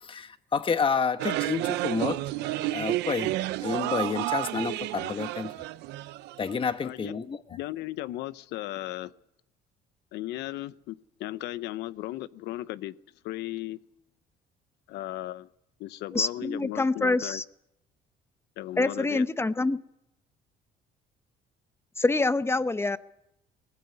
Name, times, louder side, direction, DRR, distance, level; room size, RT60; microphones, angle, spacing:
voice 1, 0.0-2.2 2.7-3.3 3.6-5.5 6.4-7.4, left 5 dB, 30° left, 1.2 m, -29 dB
sound 1, 1.2-6.6, right 17 dB, 90° right, 0.7 m, -31 dB
voice 2, 6.8-7.1 7.5-9.1 10.1-12.9 13.2-13.8 14.9-15.5 15.8-17.4 18.6-19.2, left 15 dB, 85° left, 0.8 m, -36 dB
voice 3, 16.1-17.4 18.8-19.8 22.0-23.0, left 3 dB, 15° left, 0.8 m, -26 dB
20.0 x 15.0 x 9.7 m
cardioid pair, 110°, 17 cm